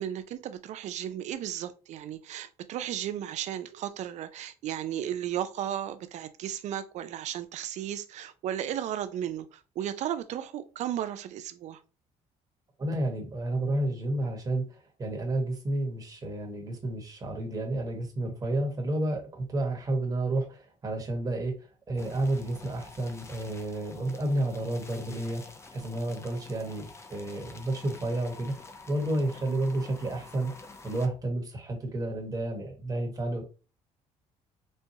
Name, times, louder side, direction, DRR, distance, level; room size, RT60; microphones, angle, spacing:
voice 1, 0.0-11.8, right 10 dB, 65° right, 0.5 m, -34 dB
voice 2, 12.8-25.4 25.7-28.6 28.9-30.5 30.8-33.4, right 1 dB, 30° right, 1.2 m, -31 dB
sound 1, 22.0-31.1, left 3 dB, 20° left, 0.5 m, -48 dB
4.3 x 2.2 x 2.7 m
cardioid pair, 95°, 13 cm